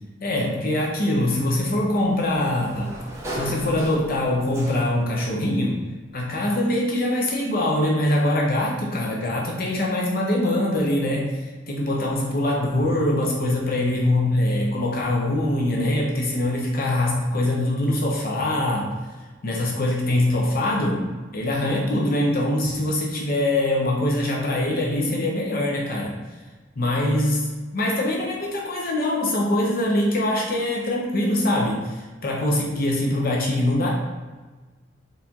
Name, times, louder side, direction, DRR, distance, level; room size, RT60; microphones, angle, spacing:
voice 1, 0.2-3.0 3.3-5.8 6.1-18.9 19.4-21.1 21.3-26.1 26.8-27.4 27.7-33.9, left 1 dB, 50° left, -2 dB, 0.7 m, -23 dB
Sliding door, 1.2-5.2, equal, 15° right, 0.8 m, -37 dB
4.3 x 3.3 x 2.8 m, 1.3 s
head